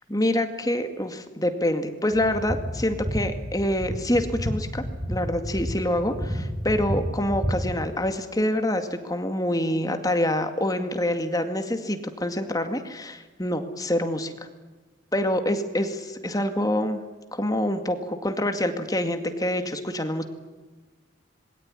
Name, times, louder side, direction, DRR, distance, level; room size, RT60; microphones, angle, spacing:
voice 1, 0.1-14.3 15.1-17.0 17.3-20.2, left 1 dB, 20° left, 7 dB, 2.2 m, -26 dB
sound 1, 2.1-7.8, equal, 20° right, 5.0 m, -31 dB
26.5 x 22.5 x 10.0 m, 1.3 s
head